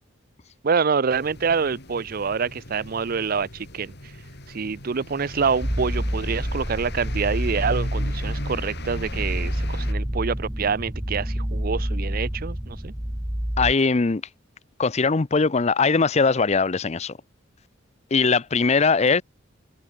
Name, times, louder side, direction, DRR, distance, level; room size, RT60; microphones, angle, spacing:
voice 1, 0.6-3.9 4.5-12.9, right 5 dB, 45° right, 0.5 m, -26 dB
sound 1, 1.1-9.9, left 1 dB, 55° left, 6.2 m, -38 dB
sound 2, 5.6-13.7, equal, 10° right, 1.1 m, -28 dB
voice 2, 13.6-14.2 14.8-17.2 18.1-19.2, left 4 dB, 35° left, 0.6 m, -20 dB
head